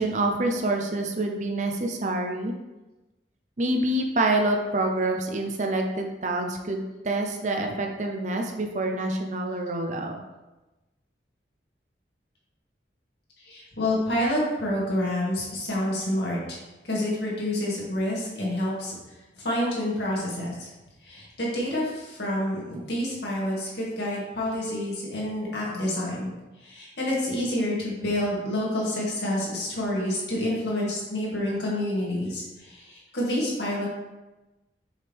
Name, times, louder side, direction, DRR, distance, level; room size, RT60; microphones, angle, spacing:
voice 1, 0.0-2.5 3.6-10.2, right 2 dB, 40° right, 3 dB, 0.7 m, -27 dB
voice 2, 13.4-16.6 16.8-18.9 19.3-20.7 21.0-26.3 26.6-33.9, left 1 dB, 70° left, -5 dB, 2.2 m, -28 dB
6.4 x 4.8 x 3.5 m, 1.1 s
head